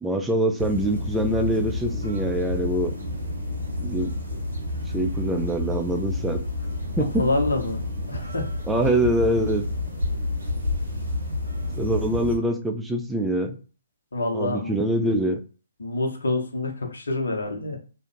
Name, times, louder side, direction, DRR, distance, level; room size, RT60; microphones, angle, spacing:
voice 1, 0.0-2.9 3.8-4.1 4.9-6.4 7.0-7.3 8.7-9.6 11.8-13.6 14.3-15.4, right 1 dB, 5° right, 4 dB, 0.3 m, -24 dB
sound 1, 0.6-12.4, left 2 dB, 80° right, 1.0 m, -29 dB
voice 2, 7.2-8.5 14.1-14.7 15.8-17.8, left 2 dB, 75° left, 3 dB, 0.7 m, -27 dB
2.6 x 2.0 x 2.5 m, 0.36 s
figure-of-eight pair, 130°, 0 cm